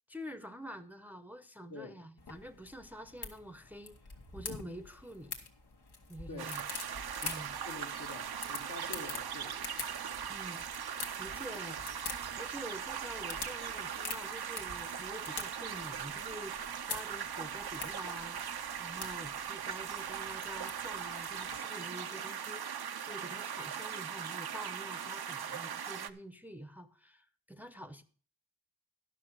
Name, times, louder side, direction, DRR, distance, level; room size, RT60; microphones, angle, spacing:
voice 1, 0.1-4.0 4.3-5.3 6.1-6.6 7.2-7.5 10.3-10.6 11.2-11.8 12.4-18.4 18.8-28.0, equal, 5° right, 0.7 m, -47 dB
voice 2, 1.7-2.0 6.3-6.5 7.1-7.4 7.6-9.8, left 2 dB, 60° left, 1.4 m, -47 dB
sound 1, 2.2-21.6, left 4 dB, 85° left, 1.5 m, -47 dB
sound 2, 6.4-26.1, right 8 dB, 75° right, 0.7 m, -40 dB
11.5 x 5.9 x 6.1 m
wide cardioid pair, 75°, 39 cm